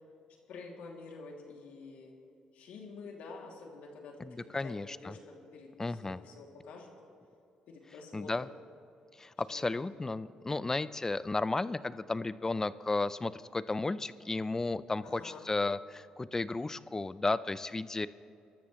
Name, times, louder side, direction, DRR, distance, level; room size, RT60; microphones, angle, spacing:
voice 1, 0.5-2.1 2.5-6.9 7.7-8.5 9.5-9.8 15.0-15.5, left 4 dB, 75° left, 0 dB, 2.7 m, -49 dB
voice 2, 4.2-5.2 5.8-6.2 8.1-8.5 9.2-18.1, left 3 dB, 20° left, 16 dB, 0.5 m, -33 dB
24.5 x 13.0 x 3.2 m, 2.6 s
supercardioid pair, 70°, 2 cm